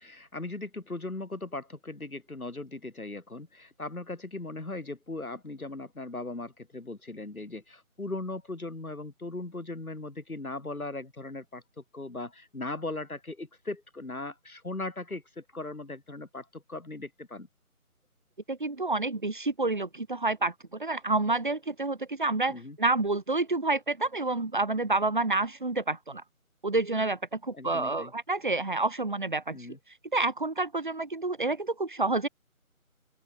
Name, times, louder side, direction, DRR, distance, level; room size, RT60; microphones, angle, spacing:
voice 1, 0.0-17.5 22.5-22.8 27.5-28.1 29.5-29.8, left 2 dB, 75° left, 5.5 m, -38 dB
voice 2, 18.5-26.2 26.6-29.6 30.1-32.3, right 2 dB, 35° right, 2.9 m, -29 dB
open air
figure-of-eight pair, 175°, 43 cm